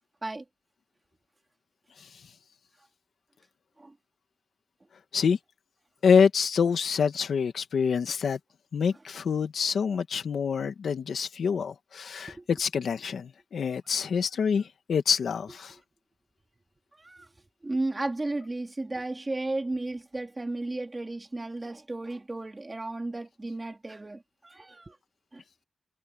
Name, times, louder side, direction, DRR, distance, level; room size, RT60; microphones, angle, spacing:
voice 1, 6.0-8.4 8.7-15.8, left 6 dB, 90° left, 1.5 m, -26 dB
voice 2, 16.9-17.3 17.6-25.0 25.3-25.4, right 2 dB, 20° right, 3.1 m, -34 dB
wide cardioid pair, 145°, 0 cm